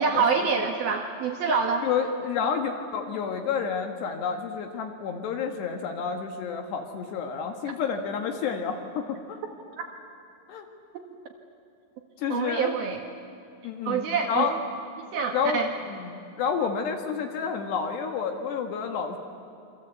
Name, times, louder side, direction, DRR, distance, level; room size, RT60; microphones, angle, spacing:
voice 1, 0.0-1.9 9.8-9.9 12.3-13.0 13.9-14.6 15.1-15.7, right 5 dB, 65° right, 3 dB, 2.7 m, -26 dB
voice 2, 1.5-9.4 10.5-10.7 12.2-12.7 13.6-14.5 15.3-19.2, left 6 dB, 65° left, 4 dB, 3.4 m, -30 dB
27.5 x 25.0 x 8.3 m, 2.6 s
omnidirectional pair, 5.8 m